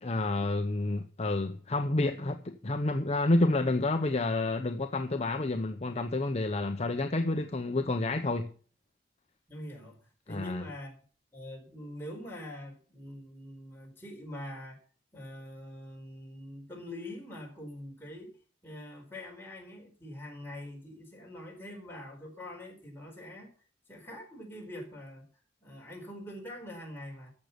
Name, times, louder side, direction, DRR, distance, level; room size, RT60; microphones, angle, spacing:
voice 1, 0.0-8.5 10.3-10.7, left 2 dB, 35° left, 0.8 m, -29 dB
voice 2, 9.5-11.0 11.3-14.8 15.1-18.3 18.6-23.5 23.9-25.3 25.6-27.3, left 1 dB, 10° left, 4.3 m, -44 dB
14.0 x 6.5 x 6.8 m
head